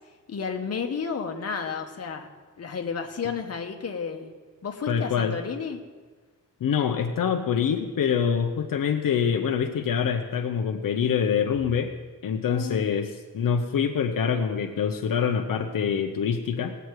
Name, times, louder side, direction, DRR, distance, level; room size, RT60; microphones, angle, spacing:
voice 1, 0.3-2.3 2.6-4.3 4.6-5.8 12.5-12.9, left 6 dB, 50° left, 4 dB, 1.2 m, -32 dB
voice 2, 4.9-5.4 6.6-11.9 12.2-16.7, left 7 dB, 80° left, 4 dB, 0.8 m, -25 dB
19.0 x 8.1 x 4.7 m, 1.4 s
wide cardioid pair, 150°, 33 cm